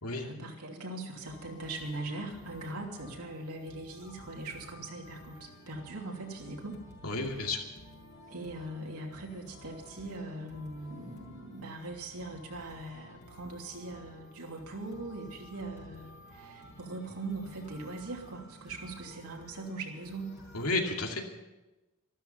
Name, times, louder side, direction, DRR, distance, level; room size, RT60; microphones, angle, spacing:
voice 1, 0.1-6.8 8.3-20.3, right 2 dB, 80° right, 0 dB, 3.0 m, -41 dB
sound 1, 1.2-20.7, left 1 dB, 55° left, 5.1 m, -53 dB
voice 2, 7.0-7.6 20.5-21.2, left 2 dB, 70° left, 2 dB, 2.5 m, -31 dB
14.0 x 13.0 x 7.1 m, 1.1 s
head